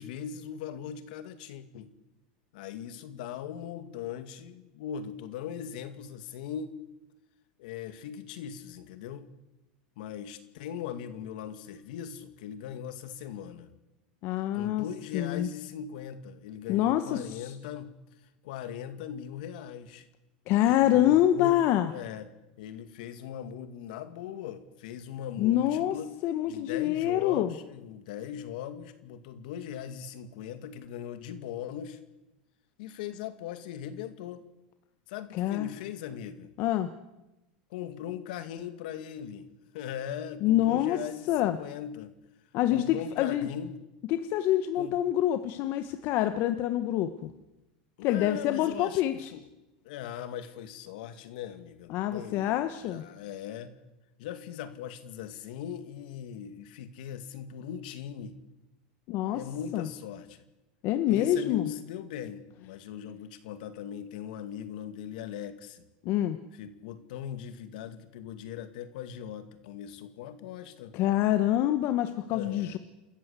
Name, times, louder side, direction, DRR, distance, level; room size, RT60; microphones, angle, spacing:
voice 1, 0.0-1.9 2.5-6.8 7.6-9.3 10.0-13.7 14.5-17.9 18.4-20.1 20.6-21.6 21.9-22.3 22.6-26.2 26.5-32.0 32.8-34.4 35.1-36.5 37.7-42.1 42.7-43.8 44.8-45.0 48.0-49.4 49.8-52.5 52.8-53.7 54.2-58.4 59.3-60.4 61.1-65.9 66.6-71.0 72.3-72.8, left 9 dB, 70° left, 10 dB, 2.2 m, -40 dB
voice 2, 14.2-14.8 15.1-15.5 16.7-17.5 20.5-21.9 25.4-26.0 26.2-27.5 35.3-35.7 36.6-36.9 40.4-41.0 41.3-41.6 42.5-43.5 44.1-47.3 48.0-49.3 51.9-53.0 59.1-59.4 59.7-59.9 60.8-61.7 66.0-66.4 70.9-72.8, left 12 dB, 55° left, 9 dB, 1.2 m, -26 dB
29.0 x 14.0 x 8.3 m, 0.99 s
hypercardioid pair, 110°, 5 cm